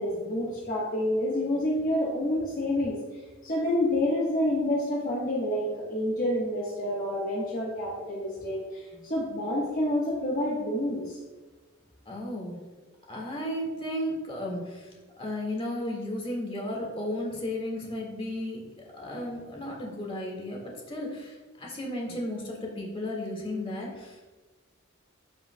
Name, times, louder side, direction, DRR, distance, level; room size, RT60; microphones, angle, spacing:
voice 1, 0.0-3.0 3.4-11.2, left 1 dB, 45° left, -5 dB, 1.2 m, -28 dB
voice 2, 12.0-12.6 13.1-14.9 15.2-18.6 18.9-24.2, left 1 dB, 25° left, -2 dB, 1.8 m, -34 dB
13.0 x 5.5 x 2.2 m, 1.2 s
head